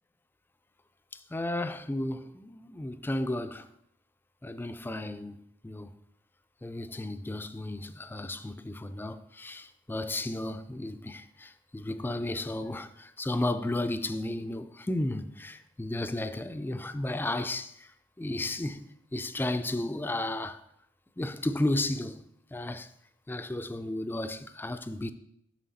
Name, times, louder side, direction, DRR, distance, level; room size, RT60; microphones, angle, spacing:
voice 1, 1.3-3.7 4.4-5.4 5.6-5.9 6.6-17.7 18.2-20.6 21.2-22.2 22.5-22.9 23.3-25.1, left 1 dB, 10° left, 0.3 m, -33 dB
7.4 x 6.3 x 4.1 m
head